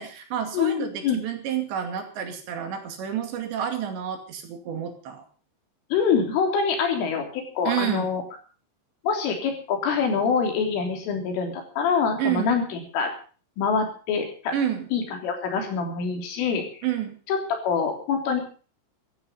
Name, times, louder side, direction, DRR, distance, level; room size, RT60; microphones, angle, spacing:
voice 1, 0.0-5.2 7.7-8.1 12.2-12.6 14.5-14.9 16.8-17.2, right 9 dB, 65° right, 5 dB, 4.4 m, -29 dB
voice 2, 0.5-1.2 5.9-8.2 9.0-12.6 12.9-13.1 13.6-14.5 14.9-16.8 17.3-17.4 17.6-18.4, left 6 dB, 85° left, 3 dB, 5.9 m, -25 dB
16.5 x 13.5 x 5.4 m, 0.40 s
omnidirectional pair, 5.6 m